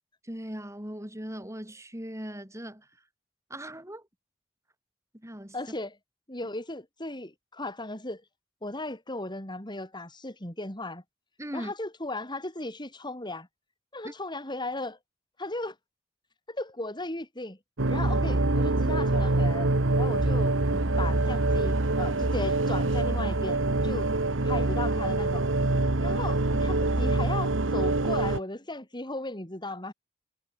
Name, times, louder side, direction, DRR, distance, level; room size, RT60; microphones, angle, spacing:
voice 1, 0.2-2.9 3.5-4.1 5.1-5.6 11.4-11.7 14.0-14.1 26.5-26.7, equal, 15° right, 7.4 m, -39 dB
voice 2, 5.5-6.0 6.3-8.2 8.6-11.0 11.5-13.5 13.9-15.0 15.4-15.8 16.5-17.6 17.9-24.1 24.4-25.5 26.0-29.9, left 2 dB, 25° left, 5.7 m, -36 dB
sound 1, 17.8-28.4, right 2 dB, 90° right, 1.5 m, -25 dB
head